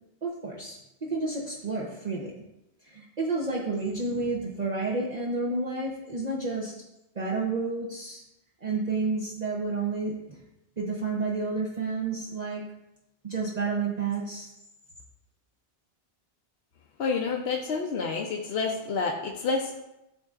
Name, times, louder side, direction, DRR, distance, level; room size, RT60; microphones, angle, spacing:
voice 1, 0.2-2.3 2.8-6.7 7.1-8.2 8.6-10.4 10.8-12.6 13.2-14.5, right 3 dB, 45° right, -4 dB, 0.9 m, -30 dB
voice 2, 17.0-19.8, left 4 dB, 75° left, 0 dB, 0.9 m, -29 dB
11.5 x 3.8 x 2.4 m, 0.90 s
omnidirectional pair, 1.1 m